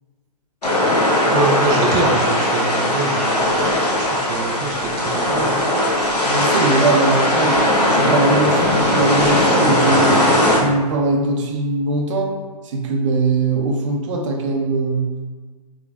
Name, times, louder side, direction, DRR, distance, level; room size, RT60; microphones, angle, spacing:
sound 1, 0.6-10.6, left 1 dB, 90° left, 1.0 m, -18 dB
voice 1, 1.3-5.6, right 3 dB, 20° right, -2 dB, 0.4 m, -25 dB
voice 2, 6.2-7.6 7.9-10.2 10.6-12.4 12.6-15.1, right 3 dB, 50° right, 2 dB, 0.7 m, -21 dB
4.9 x 3.3 x 2.3 m, 1.4 s
hypercardioid pair, 125°, 20 cm